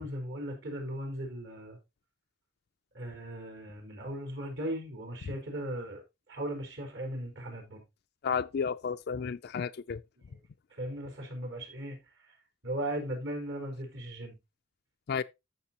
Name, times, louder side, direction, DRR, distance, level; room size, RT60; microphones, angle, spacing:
voice 1, 0.0-1.8 2.9-6.0 6.3-7.8 10.8-12.0 12.6-14.3, right 1 dB, 65° right, 4.5 m, -37 dB
voice 2, 8.2-10.0 15.1-15.2, left 6 dB, 55° left, 0.4 m, -32 dB
13.5 x 6.0 x 2.9 m
head